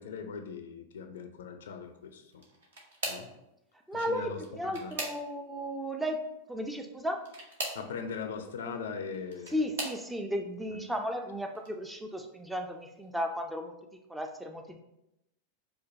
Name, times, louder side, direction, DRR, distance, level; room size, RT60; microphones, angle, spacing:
voice 1, 0.0-2.4 3.1-3.3 3.9-4.4 4.8-4.9 7.7-9.7 10.7-10.8, left 6 dB, 60° left, 7 dB, 0.5 m, -40 dB
sound 1, 2.3-3.4 4.3-5.6 7.2-7.9 9.0-10.0 10.8-11.1 11.5-11.7 13.0-13.1, right 2 dB, 65° right, 1.0 m, -39 dB
voice 2, 3.9-6.2 6.5-7.2 9.5-13.7 14.1-14.8, equal, 5° right, 4 dB, 0.4 m, -34 dB
5.0 x 2.2 x 4.0 m, 0.88 s
figure-of-eight pair, 90°, 0 cm